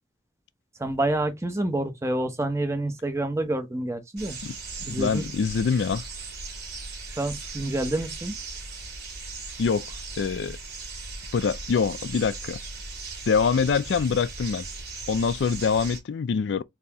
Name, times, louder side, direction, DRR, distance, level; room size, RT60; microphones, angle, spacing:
voice 1, 0.8-4.4 4.9-5.3 7.1-8.4, right 1 dB, 15° right, 0.7 m, -28 dB
sound 1, 4.2-16.0, right 3 dB, 55° right, 2.2 m, -38 dB
voice 2, 4.8-6.0 9.6-9.9 10.2-10.6 11.3-12.6 13.3-14.6 15.1-16.6, left 5 dB, 80° left, 0.4 m, -24 dB
4.1 x 2.8 x 3.4 m
head